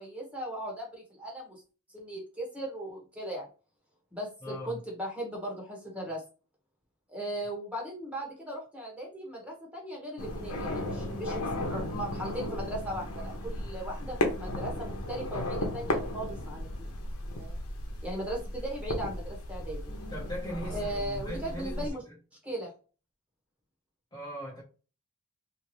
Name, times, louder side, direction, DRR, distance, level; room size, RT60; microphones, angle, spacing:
voice 1, 0.0-1.6 1.9-3.5 4.1-6.2 7.1-16.9 17.3-17.6 18.0-19.9 20.7-22.0 22.4-22.7, right 1 dB, 5° right, 1.2 m, -38 dB
voice 2, 4.4-4.8 20.1-22.1 24.1-24.6, equal, 20° left, 0.9 m, -39 dB
sound 1, 10.2-21.9, left 1 dB, 75° left, 0.9 m, -35 dB
3.5 x 2.9 x 3.0 m
head